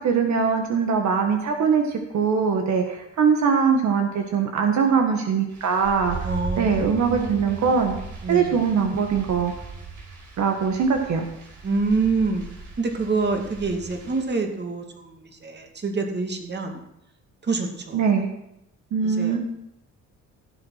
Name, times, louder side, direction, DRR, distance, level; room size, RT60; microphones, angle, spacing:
voice 1, 0.0-6.3 6.6-8.0 8.3-9.5 10.4-11.2 17.9-18.3 18.9-19.4, right 6 dB, 65° right, 3 dB, 1.7 m, -22 dB
sound 1, 5.5-14.2, right 3 dB, 80° right, 4.8 m, -38 dB
voice 2, 6.2-7.7 8.2-8.6 11.6-12.4 12.8-16.8 17.4-18.1 19.0-19.4, right 4 dB, 35° right, 4 dB, 2.4 m, -27 dB
16.0 x 7.4 x 5.8 m, 0.81 s
cardioid pair, 90°, 30 cm